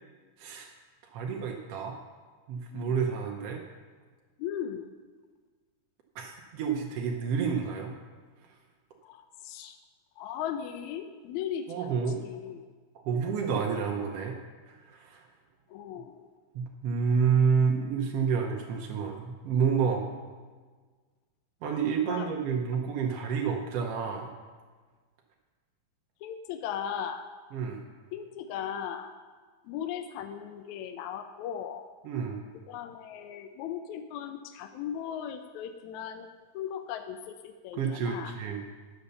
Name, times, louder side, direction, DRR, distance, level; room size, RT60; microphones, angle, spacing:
voice 1, 0.4-0.7 1.0-2.0 2.5-3.6 6.1-7.9 11.7-12.2 13.0-14.4 14.7-15.2 16.5-20.0 21.6-24.3 27.5-27.9 32.0-32.4 37.7-38.6, right 6 dB, 70° right, 0 dB, 1.6 m, -29 dB
voice 2, 4.4-4.9 9.0-9.8 10.2-11.9 12.2-12.7 15.7-16.2 22.1-22.3 26.2-27.3 28.1-29.1 29.7-31.9 32.7-36.3 36.5-38.3, left 9 dB, 80° left, 7 dB, 1.8 m, -37 dB
10.5 x 7.0 x 6.7 m, 1.5 s
omnidirectional pair, 3.6 m